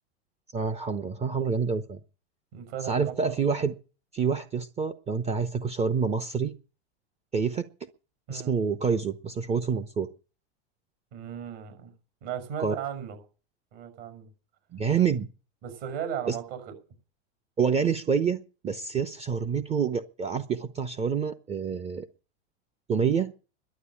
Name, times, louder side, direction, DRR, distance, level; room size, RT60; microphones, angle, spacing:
voice 1, 0.5-2.0 2.9-3.7 4.1-6.5 7.3-7.7 8.3-10.1 12.6-12.7 14.7-15.3 16.3-16.4 17.6-22.1 22.9-23.3, right 6 dB, 20° right, 0.7 m, -27 dB
voice 2, 2.5-3.3 8.3-8.5 11.1-11.9 12.2-13.2 13.7-14.3 15.6-16.7, right 9 dB, 55° right, 6.4 m, -36 dB
11.5 x 8.1 x 9.9 m
supercardioid pair, 135°, 35 cm